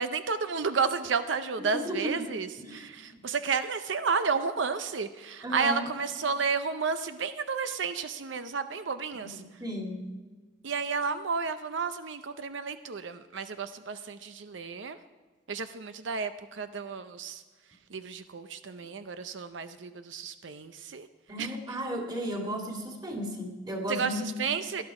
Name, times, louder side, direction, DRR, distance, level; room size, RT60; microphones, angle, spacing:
voice 1, 0.0-9.4 10.6-15.0 15.5-17.4 17.9-21.1 21.4-21.5 23.9-24.8, right 5 dB, 85° right, 10 dB, 0.6 m, -32 dB
voice 2, 1.6-2.3 2.6-3.2 5.4-5.9 9.1-10.1 21.3-24.2, equal, 20° right, 1 dB, 2.3 m, -35 dB
18.5 x 11.5 x 4.9 m, 1.4 s
head